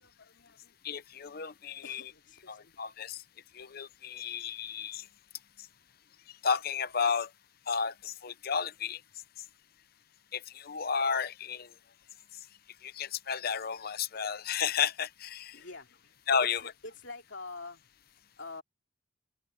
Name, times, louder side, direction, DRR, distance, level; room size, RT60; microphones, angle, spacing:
voice 1, 0.0-0.8 1.8-2.8 15.5-18.6, left 3 dB, 65° left, 2.7 m, -47 dB
voice 2, 0.8-2.0 2.5-3.2 3.5-5.1 6.3-7.3 7.7-9.0 10.3-11.7 12.8-15.6 16.3-16.6, left 6 dB, 50° left, 0.7 m, -32 dB
head